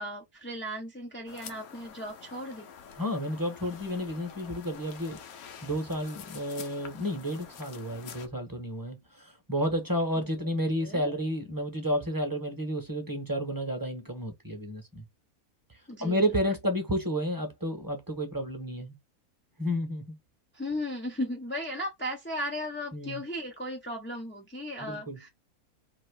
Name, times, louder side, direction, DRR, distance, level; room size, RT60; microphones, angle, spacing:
voice 1, 0.0-2.7 10.8-11.1 15.9-16.2 20.5-25.3, left 1 dB, 15° left, 0.4 m, -36 dB
sound 1, 1.3-8.3, left 7 dB, 75° left, 1.2 m, -47 dB
voice 2, 3.0-5.2 5.6-15.0 16.0-18.9 19.6-20.2 22.9-23.2 24.8-25.2, equal, 15° right, 1.0 m, -31 dB
3.0 x 2.9 x 4.6 m
omnidirectional pair, 1.6 m